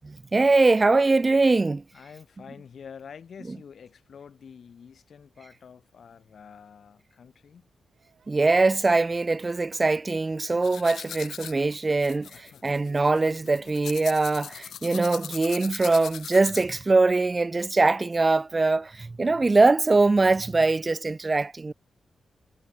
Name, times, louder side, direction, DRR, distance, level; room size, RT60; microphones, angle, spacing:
voice 1, 0.3-1.8 8.3-21.7, right 3 dB, 25° right, 0.3 m, -22 dB
voice 2, 1.9-7.7 12.3-12.8 19.2-19.5, left 7 dB, 55° left, 1.4 m, -47 dB
sound 1, 7.9-17.9, right 6 dB, 50° right, 6.6 m, -63 dB
sound 2, 10.6-16.9, left 9 dB, 85° left, 0.6 m, -40 dB
wide cardioid pair, 130°, 0 cm